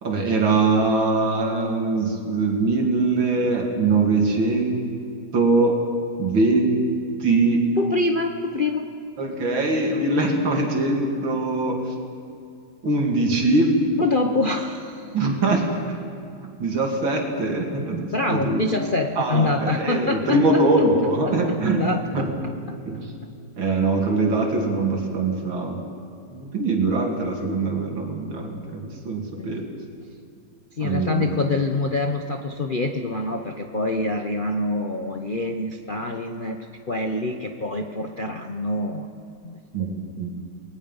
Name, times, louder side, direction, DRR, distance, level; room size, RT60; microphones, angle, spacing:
voice 1, 0.0-4.8 5.3-5.8 6.2-6.9 7.2-7.6 9.2-11.9 12.8-13.8 15.1-16.0 16.4-18.6 19.2-22.3 22.9-23.1 23.6-25.8 26.3-29.6 30.8-31.3 39.7-40.3, right 3 dB, 65° right, 1 dB, 3.3 m, -22 dB
voice 2, 7.8-8.9 14.0-15.1 18.1-20.6 21.3-21.4 21.6-22.3 22.7-22.8 29.4-29.5 30.8-39.1 39.4-40.0 40.3-40.4, left 2 dB, 80° left, 3 dB, 0.4 m, -26 dB
29.0 x 19.5 x 5.5 m, 2.3 s
omnidirectional pair, 2.3 m